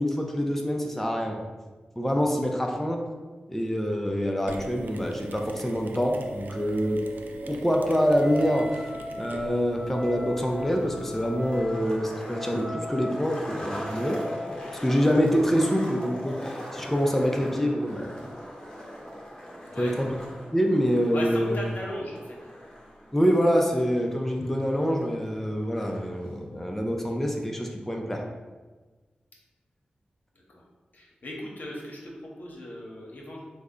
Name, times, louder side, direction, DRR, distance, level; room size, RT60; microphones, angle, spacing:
voice 1, 0.0-1.4 2.0-3.0 3.5-7.0 7.5-8.9 9.2-14.2 14.8-18.1 19.8-20.1 20.5-21.6 23.1-28.2, equal, 10° left, 1 dB, 0.5 m, -25 dB
Mechanisms, 4.5-11.6, right 2 dB, 75° right, 0.3 m, -42 dB
Wind instrument woodwind instrument, 8.2-14.8, equal, 50° right, 0.7 m, -39 dB
Skateboard, 9.2-26.2, equal, 25° left, 0.9 m, -41 dB
voice 2, 21.1-22.5 30.3-30.6 30.9-33.4, left 1 dB, 65° left, -3 dB, 0.8 m, -38 dB
3.4 x 2.1 x 3.7 m, 1.3 s
cardioid pair, 40°, 3 cm